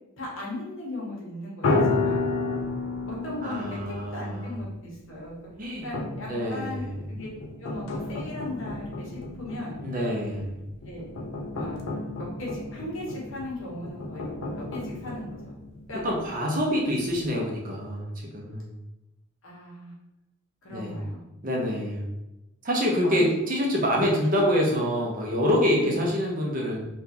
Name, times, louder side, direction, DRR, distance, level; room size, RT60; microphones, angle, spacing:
voice 1, 0.2-2.3 3.0-5.3 5.8-7.3 7.6-9.8 10.8-11.1 11.5-11.8 12.2-15.5 15.9-16.0 19.4-19.9 20.6-21.2 23.0-23.3 25.8-26.1, left 1 dB, 60° left, -4 dB, 1.1 m, -37 dB
sound 1, 1.6-4.6 5.9-16.3 16.8-16.9 17.1-17.3, left 3 dB, 75° left, 0.5 m, -32 dB
voice 2, 3.4-4.5 5.6-5.8 6.3-7.0 9.8-10.5 16.0-18.7 20.7-21.0 21.4-22.1 22.6-26.8, equal, 40° right, -1 dB, 0.7 m, -26 dB
3.7 x 2.4 x 2.8 m, 0.95 s
head